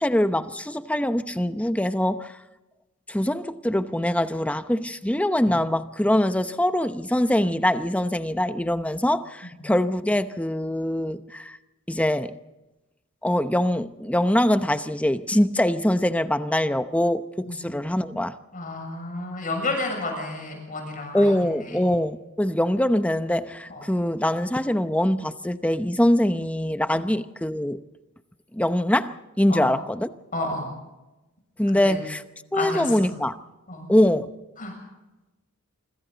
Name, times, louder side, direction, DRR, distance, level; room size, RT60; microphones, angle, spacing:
voice 1, 0.0-2.3 3.1-11.6 11.9-12.4 13.2-18.4 21.1-27.8 28.5-30.1 31.6-32.2 32.5-33.4 33.9-34.3, left 1 dB, 5° left, 0.8 m, -23 dB
voice 2, 18.5-21.3 21.6-21.8 23.7-23.8 29.5-29.7 30.3-30.7 31.7-32.0 32.5-32.9 33.7-33.9 34.6-34.7, left 2 dB, 40° left, 7.0 m, -31 dB
26.5 x 26.0 x 4.1 m
head